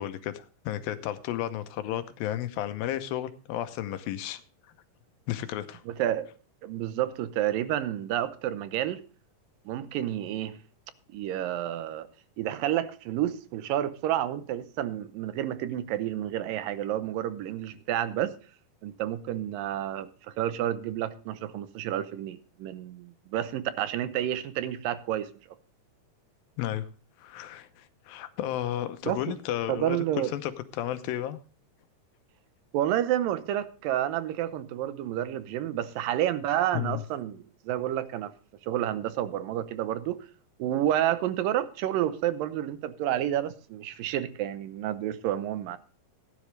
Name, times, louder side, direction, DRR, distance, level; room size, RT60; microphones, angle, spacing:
voice 1, 0.0-4.4 5.3-5.8 26.6-26.9 27.2-30.0 30.3-31.4 36.7-37.0, left 12 dB, 85° left, 2.7 m, -33 dB
voice 2, 5.9-6.3 6.6-9.0 9.7-10.6 11.1-12.1 12.4-18.3 18.8-20.1 20.4-25.3 29.0-29.3 29.7-30.3 32.7-38.3 38.7-40.3 40.6-45.8, right 12 dB, 80° right, 2.5 m, -30 dB
16.0 x 10.5 x 3.2 m
omnidirectional pair, 4.0 m